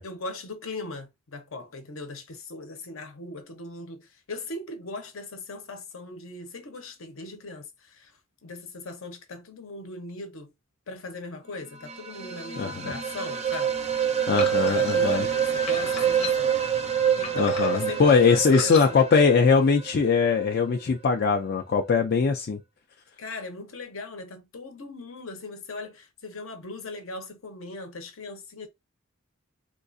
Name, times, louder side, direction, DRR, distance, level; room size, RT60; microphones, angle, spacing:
voice 1, 0.0-8.1 8.4-10.5 10.9-13.8 14.7-16.6 17.2-19.0 23.2-28.7, left 3 dB, 70° left, 0.8 m, -38 dB
sound 1, 11.7-20.5, right 8 dB, 30° right, 0.5 m, -27 dB
voice 2, 12.6-12.9 14.3-15.2 17.3-22.6, left 5 dB, 45° left, 0.4 m, -21 dB
sound 2, 14.4-14.9 15.7-16.6 17.2-18.0 18.5-18.9, left 6 dB, 30° left, 0.8 m, -36 dB
3.6 x 2.4 x 2.5 m
head